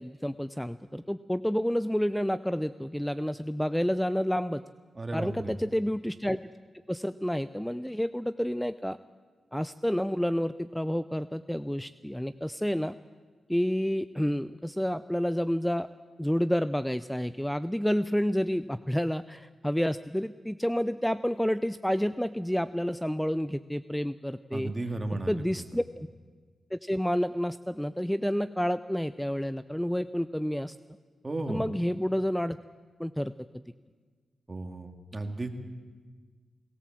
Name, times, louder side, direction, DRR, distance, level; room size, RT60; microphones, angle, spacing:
voice 1, 0.0-4.6 5.1-6.5 6.9-9.0 9.5-13.0 13.5-15.9 16.2-24.7 25.3-26.1 26.7-30.8 31.5-32.6 33.0-33.3, equal, 5° left, 14 dB, 0.5 m, -29 dB
voice 2, 4.9-5.5 24.5-25.6 31.2-31.6 34.5-35.5, right 2 dB, 30° right, 4 dB, 2.5 m, -34 dB
18.5 x 18.5 x 7.5 m, 1.5 s
cardioid pair, 55°, 0 cm